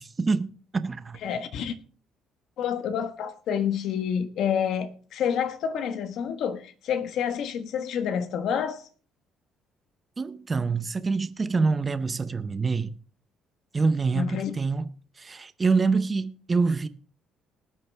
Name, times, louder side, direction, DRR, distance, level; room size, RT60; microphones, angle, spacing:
voice 1, 0.0-1.2 10.2-12.9 13.7-14.9 15.2-16.9, right 4 dB, 20° right, 0.6 m, -26 dB
voice 2, 1.2-1.7 2.6-8.9 14.1-14.5, left 8 dB, 60° left, 1.3 m, -28 dB
19.5 x 8.5 x 3.5 m
cardioid pair, 150°, 0 cm